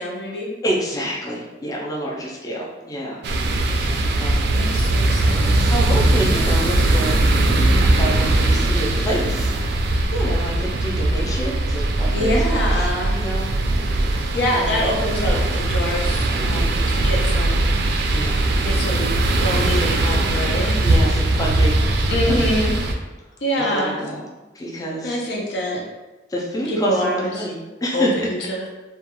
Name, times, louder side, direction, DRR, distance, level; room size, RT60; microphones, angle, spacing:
voice 1, 0.0-0.6 4.6-5.7 12.1-13.2 14.3-17.7 18.6-19.1 19.4-20.9 22.1-22.8 23.4-24.0 25.0-25.8 26.7-27.5 27.9-28.6, equal, 70° left, -1 dB, 0.5 m, -25 dB
voice 2, 0.6-3.2 4.2-4.6 5.5-12.7 13.1-13.5 14.5-14.9 16.4-16.8 18.1-18.4 20.8-21.9 22.2-22.4 23.7-24.3 24.5-25.2 26.3-28.1, equal, 20° left, -3 dB, 0.4 m, -28 dB
sound 1, 3.2-22.9, right 2 dB, 65° right, 0.3 m, -20 dB
2.3 x 2.2 x 2.8 m, 1.1 s
head